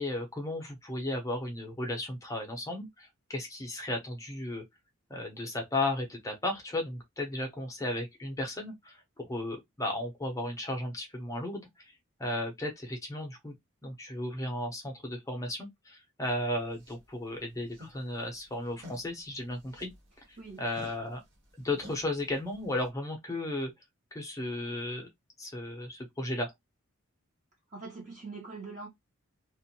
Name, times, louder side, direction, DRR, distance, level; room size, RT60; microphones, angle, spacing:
voice 1, 0.0-4.6 5.1-11.9 12.2-13.5 13.8-19.9 20.6-21.2 21.6-23.7 24.1-25.1 25.4-26.5, left 1 dB, 15° left, 0.8 m, -35 dB
sound 1, 16.3-22.9, left 1 dB, 60° right, 1.5 m, -53 dB
voice 2, 27.7-28.9, right 3 dB, 35° right, 1.1 m, -43 dB
2.6 x 2.4 x 2.8 m
head